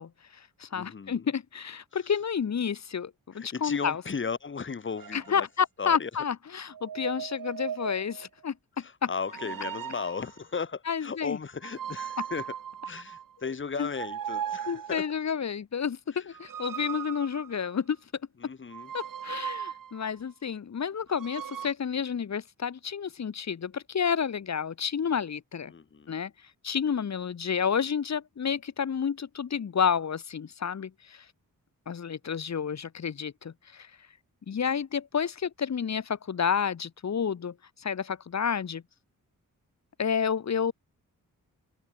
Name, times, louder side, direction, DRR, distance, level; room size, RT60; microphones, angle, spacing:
voice 1, 0.0-4.0 5.1-8.6 9.0-9.1 10.9-11.4 13.8-13.9 14.7-18.0 18.9-25.7 26.1-26.3 26.6-31.2 31.9-33.9 34.5-38.8 40.0-40.7, left 7 dB, 55° left, 1.3 m, -30 dB
voice 2, 0.7-1.3 3.3-5.5 5.8-6.1 8.8-12.5 12.8-15.0 16.1-16.2 18.4-18.9 25.7-26.2, left 5 dB, 35° left, 1.2 m, -36 dB
sound 1, 5.0-5.3 6.7-8.3 9.2-10.4 11.6-13.4 13.9-15.1 16.3-17.9 18.7-20.1 21.1-21.7, right 9 dB, 75° right, 1.4 m, -38 dB
wide cardioid pair, 95°, 34 cm